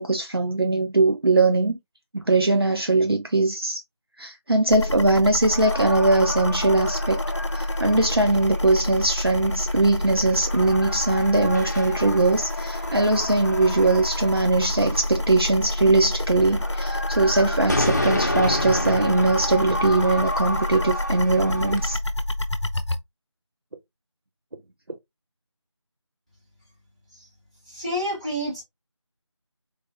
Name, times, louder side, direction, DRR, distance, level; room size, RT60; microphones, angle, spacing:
voice 1, 0.0-1.8 2.1-3.8 4.2-7.2 7.5-22.0, right 2 dB, 50° right, 0.7 m, -21 dB
sound 1, 4.7-23.0, left 1 dB, 65° left, 0.9 m, -28 dB
sound 2, 5.4-22.0, left 1 dB, 35° left, 0.8 m, -31 dB
voice 2, 27.7-28.6, equal, 15° right, 1.9 m, -28 dB
4.2 x 3.3 x 3.4 m
figure-of-eight pair, 175°, 16 cm